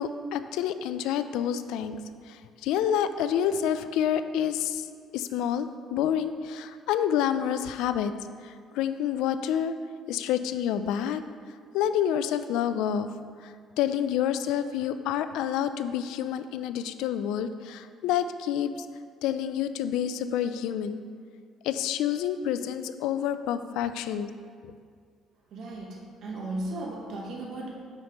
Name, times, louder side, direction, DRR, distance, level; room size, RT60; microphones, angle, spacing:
voice 1, 0.0-2.0 2.3-4.9 5.1-8.1 8.4-9.7 10.1-11.2 11.7-13.1 13.4-18.9 19.2-21.0 21.6-24.3 24.6-24.7, left 9 dB, 85° left, 11 dB, 0.3 m, -28 dB
voice 2, 25.5-27.7, right 2 dB, 60° right, -2 dB, 1.1 m, -36 dB
8.3 x 5.6 x 3.0 m, 2.1 s
cardioid pair, 135°, 0 cm